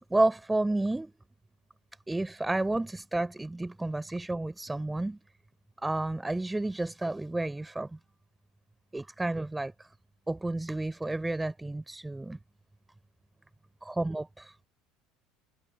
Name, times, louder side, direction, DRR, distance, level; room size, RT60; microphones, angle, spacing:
voice 1, 0.1-1.1 2.1-5.2 5.8-7.9 8.9-9.9 10.3-12.4 13.8-14.5, right 2 dB, 10° right, 4.6 m, -31 dB
figure-of-eight pair, 70°, 0 cm